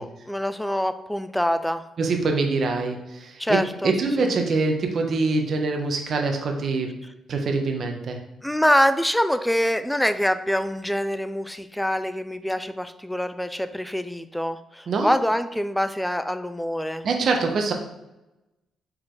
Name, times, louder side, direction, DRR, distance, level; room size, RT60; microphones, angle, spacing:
voice 1, 0.0-1.8 3.4-3.9 4.2-4.3 8.4-17.1, equal, 5° left, 11 dB, 0.4 m, -25 dB
voice 2, 2.0-7.0 7.3-8.2 14.9-15.1 17.0-17.7, right 3 dB, 55° right, 3 dB, 1.1 m, -24 dB
4.9 x 4.1 x 4.8 m, 0.94 s
cardioid pair, 90°, 0 cm